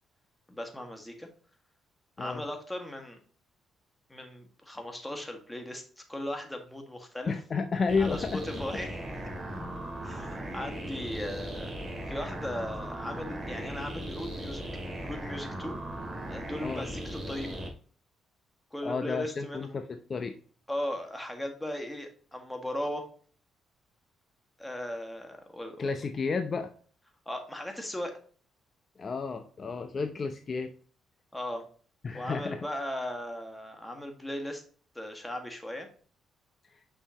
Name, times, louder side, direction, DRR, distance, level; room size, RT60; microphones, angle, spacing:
voice 1, 0.5-1.3 2.2-3.2 4.1-7.3 8.0-9.0 10.0-11.8 12.1-14.6 15.0-15.8 16.3-17.5 18.7-19.8 20.7-23.1 24.6-25.9 27.3-28.2 31.3-31.6 32.1-34.6 35.0-35.9, left 1 dB, 10° left, 4 dB, 1.8 m, -37 dB
voice 2, 7.3-8.4 9.5-9.7 16.6-16.9 18.8-20.3 25.8-26.7 29.0-30.7 32.0-32.7, left 4 dB, 40° left, 7 dB, 0.7 m, -31 dB
sound 1, 7.9-17.7, right 1 dB, 30° right, 2.4 m, -38 dB
6.5 x 5.7 x 2.9 m, 0.43 s
cardioid pair, 90°, 0 cm